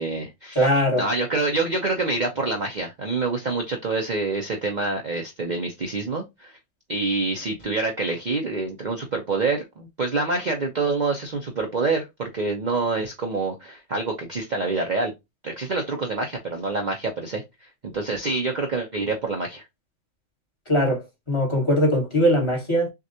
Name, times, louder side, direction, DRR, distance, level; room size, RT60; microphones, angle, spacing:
voice 1, 0.0-0.7 1.0-6.6 6.9-15.1 15.4-19.6, right 3 dB, 40° right, 0.8 m, -26 dB
voice 2, 0.5-1.0 20.7-22.9, equal, 20° left, 1.7 m, -21 dB
6.2 x 2.5 x 2.7 m
omnidirectional pair, 1.4 m